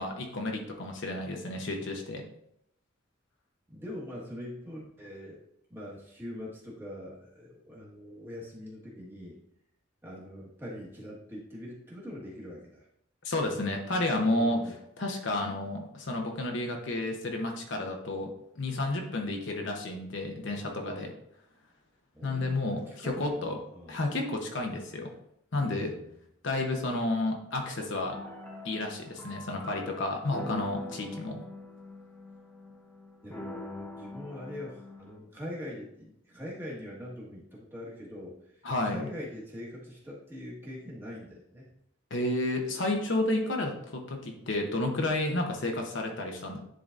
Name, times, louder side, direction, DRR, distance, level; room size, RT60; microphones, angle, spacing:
voice 1, 0.0-2.2 13.2-14.6 15.0-18.3 18.6-21.1 22.2-23.6 23.9-25.1 25.5-25.9 26.4-28.2 28.6-31.4 38.6-39.1 42.1-46.6, left 2 dB, 60° left, 2 dB, 0.9 m, -31 dB
voice 2, 3.7-5.4 5.7-9.4 10.0-12.9 14.4-14.8 22.1-24.0 25.6-26.0 33.2-41.7, left 1 dB, 10° right, -5 dB, 1.5 m, -43 dB
sound 1, 28.1-35.2, left 2 dB, 10° left, 0.7 m, -44 dB
10.0 x 3.9 x 2.5 m, 0.76 s
head